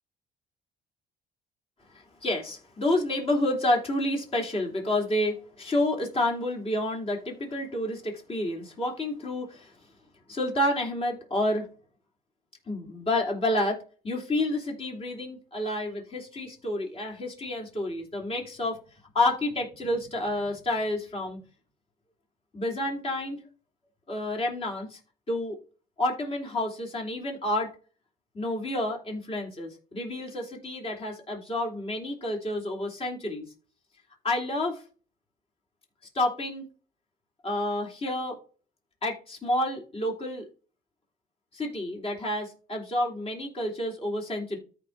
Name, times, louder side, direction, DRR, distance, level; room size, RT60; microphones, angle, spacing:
voice 1, 1.9-9.7 10.3-11.7 12.7-13.8 14.0-18.8 19.1-21.4 22.5-23.4 24.1-25.0 25.3-25.6 26.0-27.7 28.3-33.5 34.2-34.8 36.1-36.6 37.4-38.4 39.0-40.4 41.5-44.6, left 1 dB, 35° left, 0 dB, 3.2 m, -29 dB
13.5 x 4.6 x 2.6 m, 0.39 s
cardioid pair, 110°, 17 cm